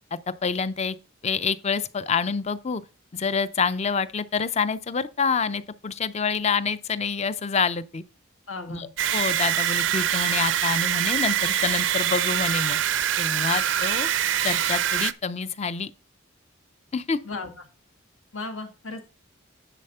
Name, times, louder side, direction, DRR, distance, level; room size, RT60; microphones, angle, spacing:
voice 1, 0.4-1.0 1.2-2.8 3.1-8.0 8.7-12.8 13.2-14.1 14.4-15.9 16.9-17.2, left 5 dB, 35° left, 0.5 m, -27 dB
voice 2, 8.5-8.9 17.2-17.5 18.3-19.1, left 3 dB, 85° left, 1.7 m, -35 dB
sound 1, 9.0-15.1, right 10 dB, 65° right, 0.5 m, -24 dB
10.0 x 4.2 x 5.5 m
head